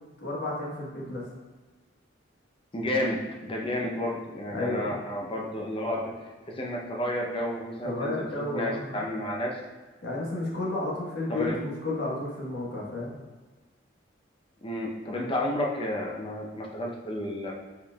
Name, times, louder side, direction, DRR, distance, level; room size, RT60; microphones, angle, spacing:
voice 1, 0.2-1.2 4.5-5.0 7.8-9.0 10.0-13.2, left 2 dB, 60° left, -4 dB, 1.4 m, -32 dB
voice 2, 2.7-6.2 6.5-9.6 11.3-11.6 14.6-17.5, left 1 dB, 30° left, -1 dB, 0.7 m, -31 dB
5.0 x 4.3 x 2.3 m, 1.3 s
head